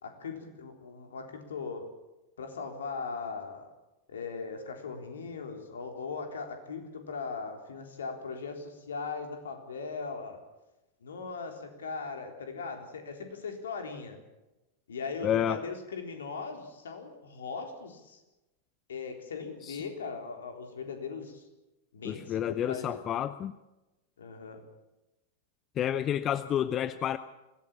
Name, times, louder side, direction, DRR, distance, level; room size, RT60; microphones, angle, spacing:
voice 1, 0.0-1.9 2.4-3.7 4.1-10.4 11.0-14.2 14.9-18.2 18.9-21.4 21.9-23.0 24.2-24.6, left 4 dB, 65° left, 4 dB, 3.7 m, -39 dB
voice 2, 15.2-15.6 19.6-19.8 22.0-23.5 25.8-27.2, left 10 dB, 30° left, 14 dB, 0.7 m, -30 dB
24.0 x 17.0 x 7.3 m, 1.0 s
figure-of-eight pair, 90°, 0 cm